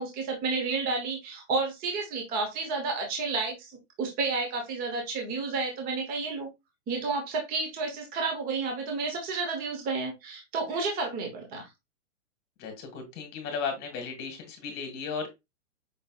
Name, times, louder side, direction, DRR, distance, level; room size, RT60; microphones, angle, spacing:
voice 1, 0.0-6.5 6.9-11.7, right 4 dB, 25° right, 2 dB, 1.0 m, -31 dB
voice 2, 12.6-15.3, left 5 dB, 25° left, 5 dB, 1.6 m, -35 dB
5.4 x 3.2 x 2.4 m, 0.22 s
hypercardioid pair, 135°, 37 cm